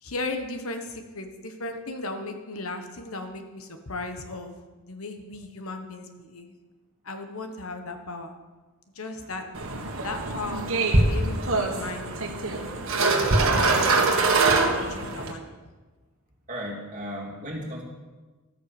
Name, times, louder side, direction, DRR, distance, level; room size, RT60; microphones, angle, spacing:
voice 1, 0.0-4.5 4.8-6.5 7.0-8.3 8.9-9.4 10.0-10.7 11.0-12.1 13.5-14.3 14.9-15.4, left 2 dB, 75° left, 6 dB, 1.4 m, -36 dB
Metal Gate, 9.5-15.3, right 3 dB, 65° right, 1.7 m, -23 dB
voice 2, 16.5-17.8, equal, 35° right, -1 dB, 2.7 m, -35 dB
13.0 x 9.3 x 7.0 m, 1.3 s
head